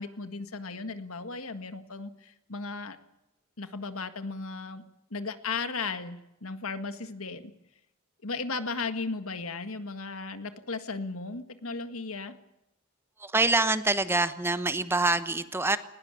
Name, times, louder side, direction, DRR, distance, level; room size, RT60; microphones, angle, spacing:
voice 1, 0.0-3.0 3.6-4.8 5.1-7.5 8.2-12.4, left 4 dB, 80° left, 9 dB, 1.8 m, -36 dB
voice 2, 13.2-15.8, right 2 dB, 10° right, 12 dB, 0.9 m, -25 dB
20.0 x 18.5 x 9.1 m, 0.90 s
head